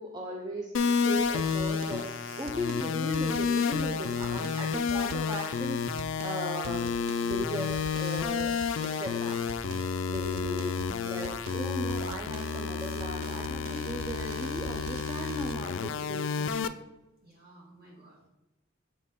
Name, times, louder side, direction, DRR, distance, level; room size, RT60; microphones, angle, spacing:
voice 1, 0.0-6.9 7.2-9.4 10.1-10.8 11.0-16.6, equal, 20° right, 0 dB, 0.4 m, -38 dB
sound 1, 0.7-16.7, left 6 dB, 65° left, 0.3 m, -30 dB
sound 2, 1.2-15.5, right 6 dB, 90° right, 0.3 m, -46 dB
voice 2, 10.9-11.4 17.2-18.3, right 2 dB, 50° right, -5 dB, 2.1 m, -54 dB
7.2 x 4.0 x 3.5 m, 0.98 s
head